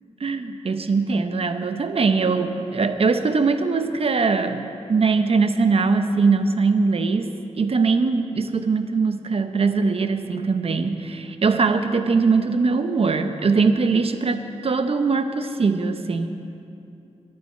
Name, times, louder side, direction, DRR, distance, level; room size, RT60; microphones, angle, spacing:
voice 1, 0.2-7.3 7.6-16.3, right 4 dB, 55° right, 8 dB, 0.8 m, -21 dB
23.0 x 8.9 x 4.5 m, 2.6 s
cardioid pair, 70°, 12 cm